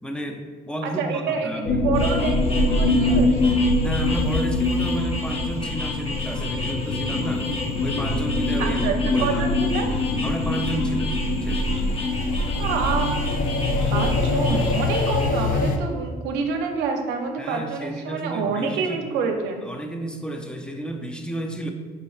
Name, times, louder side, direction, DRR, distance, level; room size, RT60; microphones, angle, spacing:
voice 1, 0.0-1.9 3.8-7.5 7.8-8.8 9.1-9.5 10.2-11.7 17.4-19.0 19.6-21.7, right 1 dB, 5° left, 4 dB, 0.5 m, -32 dB
voice 2, 0.8-3.6 8.6-9.9 12.6-13.2 13.9-19.6, right 5 dB, 90° right, 3 dB, 0.5 m, -27 dB
sound 1, 1.7-15.8, left 2 dB, 55° left, 0.5 m, -23 dB
sound 2, 1.9-15.3, left 2 dB, 35° left, 0.8 m, -35 dB
5.5 x 4.1 x 2.3 m, 1.5 s
cardioid pair, 110°, 17 cm